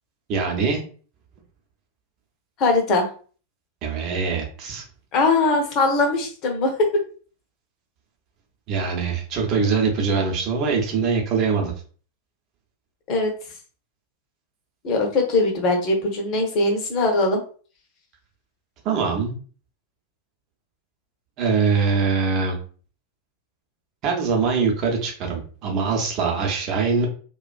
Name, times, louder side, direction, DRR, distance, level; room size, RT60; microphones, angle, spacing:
voice 1, 0.3-0.8 3.8-4.8 8.7-11.7 18.8-19.3 21.4-22.6 24.0-27.1, right 5 dB, 35° right, 1 dB, 0.7 m, -23 dB
voice 2, 2.6-3.1 5.1-7.0 13.1-13.3 14.8-17.4, left 2 dB, 35° left, 2 dB, 0.7 m, -21 dB
2.4 x 2.2 x 2.3 m, 0.41 s
figure-of-eight pair, 90°, 0 cm